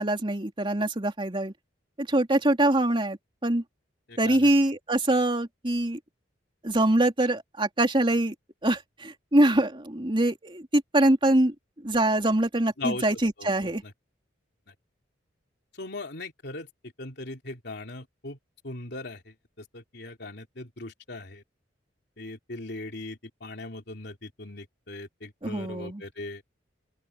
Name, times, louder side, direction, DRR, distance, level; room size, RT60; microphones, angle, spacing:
voice 1, 0.0-1.5 2.0-3.6 4.2-6.0 6.6-8.3 8.6-11.5 11.8-13.8 25.4-26.0, right 1 dB, 30° right, 2.9 m, -24 dB
voice 2, 4.1-4.5 12.8-13.0 13.4-13.9 14.7-14.8 15.7-16.7 17.0-18.4 18.6-21.4 22.2-26.5, left 2 dB, 65° left, 3.5 m, -39 dB
open air
head